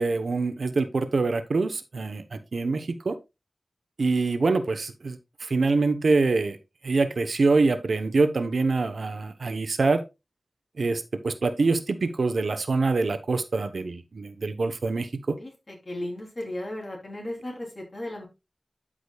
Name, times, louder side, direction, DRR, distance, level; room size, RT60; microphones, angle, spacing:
voice 1, 0.0-3.2 4.0-6.6 6.8-10.0 10.8-15.4, right 3 dB, 90° right, 0.9 m, -25 dB
voice 2, 15.4-18.3, left 1 dB, 50° left, 3.4 m, -35 dB
12.5 x 5.1 x 2.3 m
wide cardioid pair, 80°, 0 cm